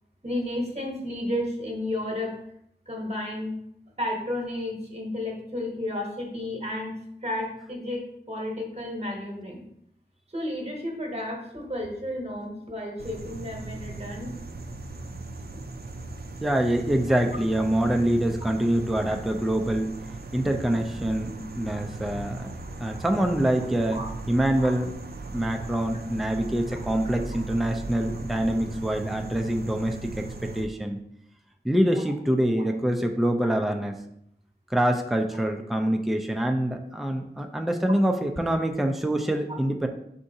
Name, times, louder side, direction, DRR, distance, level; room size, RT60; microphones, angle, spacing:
voice 1, 0.2-2.4 2.9-3.6 4.0-6.9 7.2-8.0 8.3-9.6 10.3-14.4 23.9-24.1 24.6-24.7 33.4-33.5 39.3-39.4, left 1 dB, 35° right, 0 dB, 1.1 m, -32 dB
sound 1, 13.0-30.6, right 3 dB, 60° right, 0.4 m, -38 dB
voice 2, 16.4-19.9 20.3-24.0 24.3-24.9 25.3-31.0 31.6-33.9 34.7-39.9, right 1 dB, ahead, 4 dB, 0.4 m, -25 dB
4.2 x 3.6 x 2.7 m, 0.74 s
wide cardioid pair, 40°, 18 cm